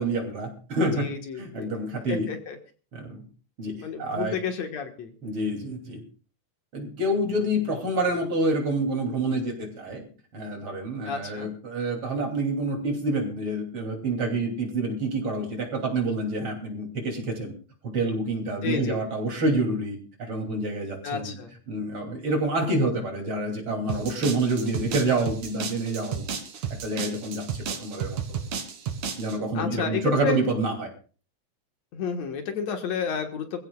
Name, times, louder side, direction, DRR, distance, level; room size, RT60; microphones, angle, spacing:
voice 1, 0.0-1.1 1.4-2.3 2.9-3.2 3.6-4.4 5.2-6.0 6.7-10.0 10.3-17.5 17.8-21.4 21.7-26.2 26.8-28.2 29.2-30.9, right 2 dB, 45° right, 2 dB, 3.6 m, -27 dB
voice 2, 1.0-1.7 2.1-2.6 3.8-5.1 11.1-11.5 18.6-19.0 21.0-21.5 29.5-30.4 31.9-33.6, left 7 dB, 70° left, 5 dB, 2.7 m, -31 dB
sound 1, 23.9-29.4, right 7 dB, 80° right, 3.2 m, -33 dB
25.0 x 15.5 x 2.3 m, 0.39 s
omnidirectional pair, 3.3 m